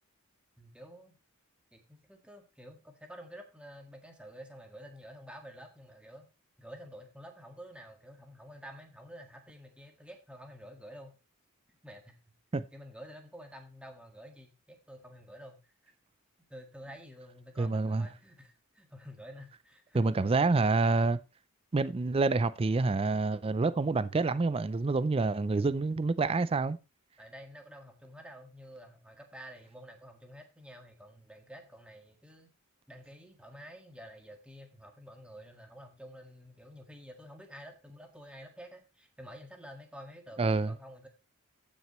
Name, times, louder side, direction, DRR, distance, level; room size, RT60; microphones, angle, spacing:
voice 1, 0.6-1.2 1.7-6.3 6.6-11.2 11.8-12.2 12.7-15.7 16.5-20.1 27.2-32.5 32.9-41.1, equal, 5° right, 1.7 m, -50 dB
voice 2, 17.6-18.1 19.9-21.2 21.7-26.8 40.4-40.7, right 3 dB, 25° right, 0.4 m, -27 dB
15.0 x 6.2 x 3.0 m
head